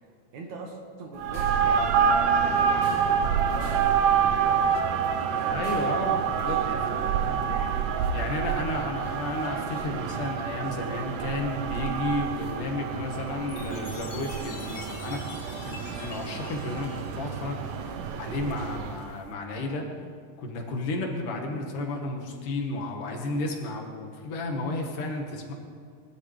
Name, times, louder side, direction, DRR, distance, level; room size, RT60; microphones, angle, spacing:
voice 1, 0.3-3.9 4.3-5.7 6.4-6.9 7.2-8.2 8.5-8.8, right 3 dB, 70° right, 1 dB, 3.0 m, -43 dB
sound 1, 1.2-19.1, right 7 dB, 90° right, 2.3 m, -27 dB
sound 2, 1.3-1.8 2.8-3.3 3.6-4.0 5.6-6.1, right 1 dB, 10° right, 2.1 m, -45 dB
voice 2, 5.5-6.6 6.9-7.5 8.1-15.4 15.7-19.9 20.4-25.5, left 2 dB, 85° left, 2 dB, 3.1 m, -32 dB
Chime, 13.5-18.1, left 4 dB, 60° left, 2.1 m, -46 dB
20.5 x 12.0 x 3.3 m, 2.2 s
omnidirectional pair, 3.6 m